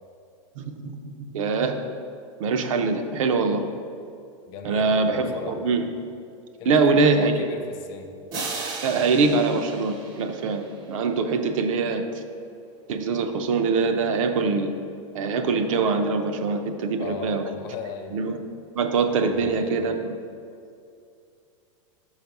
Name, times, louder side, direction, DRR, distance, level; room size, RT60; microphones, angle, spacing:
voice 1, 0.6-1.9 2.4-3.6 4.6-5.9 6.7-7.5 8.8-12.1 12.9-14.7 15.1-17.4 18.1-18.4 18.8-20.2, right 4 dB, 75° right, 6 dB, 0.6 m, -23 dB
voice 2, 4.5-5.6 6.6-8.1 17.0-18.2 19.2-20.0, left 5 dB, 30° left, 5 dB, 0.4 m, -37 dB
sound 1, 8.3-11.2, right 3 dB, 25° right, 0.5 m, -36 dB
5.3 x 4.1 x 5.8 m, 2.5 s
supercardioid pair, 170°, 17 cm